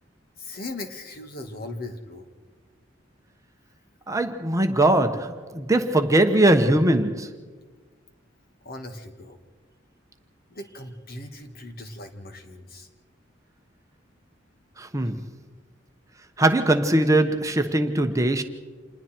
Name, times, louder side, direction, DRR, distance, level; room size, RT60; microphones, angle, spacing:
voice 1, 0.4-2.3 8.6-9.4 10.5-12.9, left 2 dB, 55° left, 2.1 m, -38 dB
voice 2, 4.1-7.3 14.8-15.2 16.4-18.4, right 1 dB, 15° right, 1.1 m, -21 dB
27.5 x 20.5 x 4.5 m
head